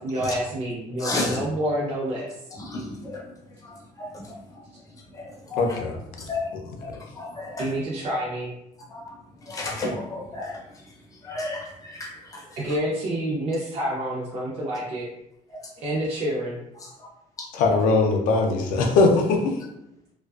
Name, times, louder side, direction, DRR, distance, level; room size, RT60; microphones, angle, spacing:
voice 1, 0.0-2.3 7.6-8.5 12.6-15.1 15.8-16.6, right 1 dB, 50° right, -5 dB, 0.5 m, -28 dB
voice 2, 1.0-1.4 2.5-5.8 6.2-7.7 8.8-12.8 15.5-15.7 16.8-17.1 17.4-17.5, left 2 dB, 25° left, -1 dB, 0.5 m, -34 dB
voice 3, 5.6-5.9 17.6-19.5, left 3 dB, 85° left, 3 dB, 0.5 m, -20 dB
2.4 x 2.2 x 2.3 m, 0.82 s
cardioid pair, 140°, 13 cm